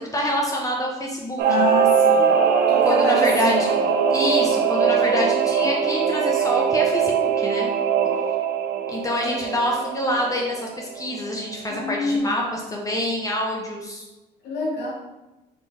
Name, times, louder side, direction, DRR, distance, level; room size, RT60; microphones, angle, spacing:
voice 1, 0.0-1.4 2.8-3.7 4.1-7.7 8.9-14.0, left 1 dB, 20° left, -1 dB, 0.7 m, -26 dB
voice 2, 1.4-2.3 2.7-3.8 11.7-12.3 14.4-14.9, left 2 dB, 90° left, -2 dB, 1.2 m, -27 dB
Singing / Musical instrument, 1.4-11.4 11.7-11.8, right 7 dB, 80° right, 0.5 m, -21 dB
3.8 x 3.0 x 4.1 m, 1.0 s
cardioid pair, 110°, 17 cm